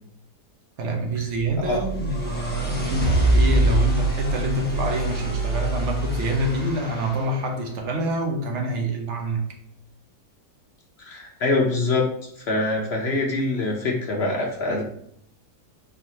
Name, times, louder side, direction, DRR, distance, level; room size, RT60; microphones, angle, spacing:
voice 1, 0.8-9.4, right 1 dB, 55° right, 2 dB, 0.9 m, -26 dB
sound 1, 1.3-7.4, right 2 dB, 15° left, 0.3 m, -24 dB
voice 2, 11.0-12.1 12.5-14.8, left 2 dB, 65° left, -1 dB, 0.6 m, -24 dB
4.5 x 3.2 x 2.8 m, 0.70 s
omnidirectional pair, 1.8 m